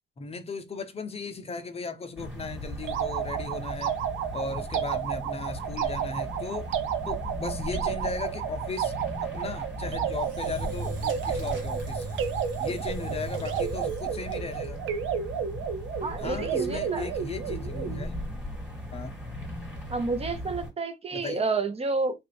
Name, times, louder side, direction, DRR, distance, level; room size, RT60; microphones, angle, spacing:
voice 1, 0.2-3.9 4.3-6.7 7.1-8.9 9.2-12.1 12.6-14.8 16.2-18.2 18.9-19.1 21.1-21.4, left 4 dB, 30° left, 0.6 m, -36 dB
sound 1, 2.2-20.7, equal, 5° right, 1.6 m, -38 dB
sound 2, 2.8-18.0, right 8 dB, 90° right, 0.5 m, -32 dB
Engine / Drill, 10.1-14.7, right 2 dB, 65° right, 1.0 m, -40 dB
voice 2, 16.0-17.1 19.9-22.2, right 3 dB, 30° right, 0.8 m, -30 dB
3.2 x 2.5 x 3.1 m
cardioid pair, 90°, 20 cm